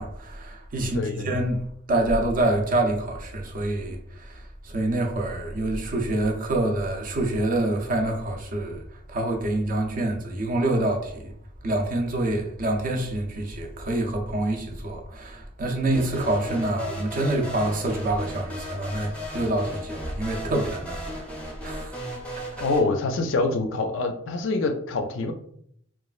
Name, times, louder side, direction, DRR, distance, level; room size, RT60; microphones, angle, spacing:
voice 1, 0.0-8.8 9.1-11.3 11.6-21.3 21.6-22.0 22.3-22.4, right 1 dB, 40° right, 0.4 m, -26 dB
voice 2, 0.8-1.3 22.6-25.3, left 3 dB, 70° left, 0.4 m, -25 dB
sound 1, 15.9-22.8, equal, 5° left, 0.5 m, -36 dB
3.0 x 2.3 x 2.4 m
head